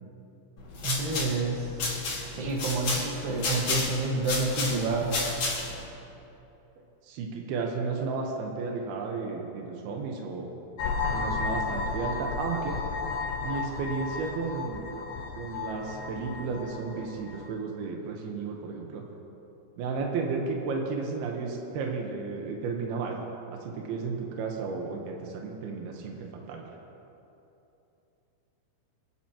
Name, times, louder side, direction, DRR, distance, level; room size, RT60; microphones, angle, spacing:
sound 1, 0.6-5.8, left 3 dB, 40° left, 3.2 m, -32 dB
voice 1, 0.8-1.7 2.3-5.1, right 3 dB, 65° right, -1 dB, 3.0 m, -29 dB
voice 2, 7.0-10.5 11.1-12.8 13.4-14.9 15.4-19.0 19.8-23.2 23.5-26.6, right 4 dB, 80° right, 1 dB, 2.2 m, -33 dB
sound 2, 10.8-17.5, left 4 dB, 85° left, 4.0 m, -33 dB
26.5 x 9.1 x 2.9 m, 2.9 s
omnidirectional pair, 6.0 m